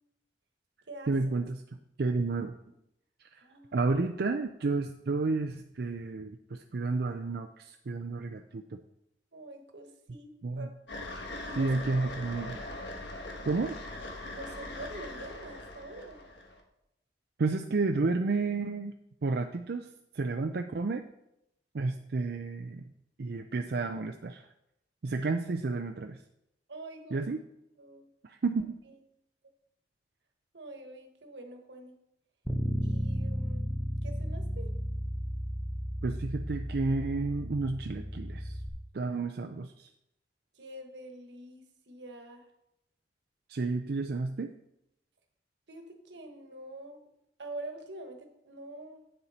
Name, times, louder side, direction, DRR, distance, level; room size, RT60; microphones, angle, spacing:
voice 1, 1.1-1.6 2.0-2.6 3.3-3.4 3.7-8.6 10.4-10.7 11.6-12.6 13.5-13.8 17.4-18.9 19.2-19.9 20.1-21.1 21.7-22.8 23.2-24.4 25.0-26.2 27.1-27.4 28.2-28.8 36.0-38.5 38.9-39.9 43.5-44.5, right 3 dB, 60° right, 4 dB, 0.5 m, -31 dB
voice 2, 3.3-3.8 9.3-10.7 11.1-11.7 14.3-16.2 26.7-27.3 27.8-28.1 28.5-28.9 30.5-31.9 32.8-33.7 34.0-34.7 40.5-42.5 45.7-47.0 47.4-49.0, right 1 dB, 85° right, 5 dB, 1.3 m, -46 dB
sound 1, 10.9-16.6, left 1 dB, 80° left, 1.4 m, -41 dB
Bass guitar, 32.5-38.7, equal, ahead, 0.9 m, -34 dB
8.8 x 6.8 x 4.2 m, 0.80 s
head